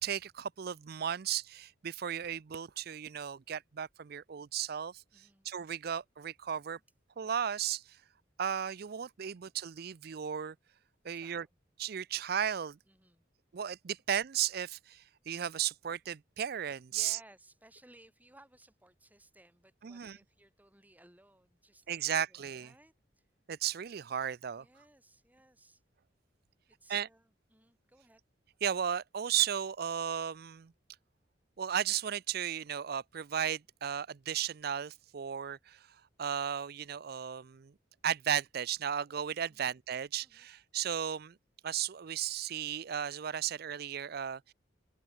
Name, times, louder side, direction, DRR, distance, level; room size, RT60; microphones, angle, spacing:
voice 1, 0.0-5.0 5.5-6.8 7.2-7.8 8.4-10.6 11.0-11.5 11.8-12.8 13.5-17.2 19.8-20.2 21.9-22.7 23.5-24.6 26.9-27.1 28.6-30.7 31.6-35.8 36.2-37.7 38.0-41.4 41.6-44.5, right 9 dB, 55° right, 0.5 m, -35 dB
voice 2, 5.1-5.5 11.1-11.6 12.9-13.3 16.9-23.3 24.5-25.8 26.7-28.2 39.5-39.7 40.2-40.5, right 1 dB, 10° right, 3.9 m, -61 dB
open air
head